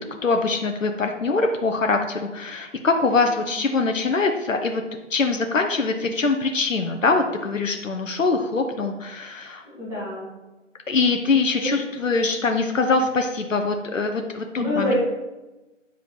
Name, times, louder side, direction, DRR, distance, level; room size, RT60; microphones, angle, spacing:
voice 1, 0.2-4.8 5.1-9.6 10.9-14.9, left 3 dB, 80° left, 5 dB, 0.9 m, -23 dB
voice 2, 9.6-10.3 11.6-11.8 14.6-14.9, left 2 dB, 10° right, -7 dB, 2.5 m, -26 dB
9.1 x 4.9 x 4.9 m, 1.1 s
figure-of-eight pair, 145°, 38 cm